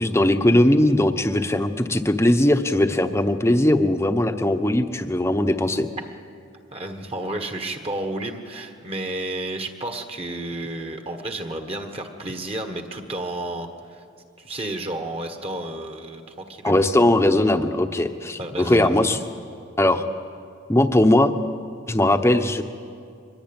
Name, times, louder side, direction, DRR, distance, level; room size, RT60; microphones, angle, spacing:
voice 1, 0.0-5.9 16.6-19.2 19.8-20.0 20.7-21.3 21.9-22.6, left 1 dB, 15° left, 8 dB, 0.9 m, -19 dB
voice 2, 6.7-14.0 14.4-16.8 18.4-19.2, right 1 dB, 30° right, 6 dB, 1.5 m, -31 dB
23.5 x 21.0 x 8.9 m, 2.3 s
head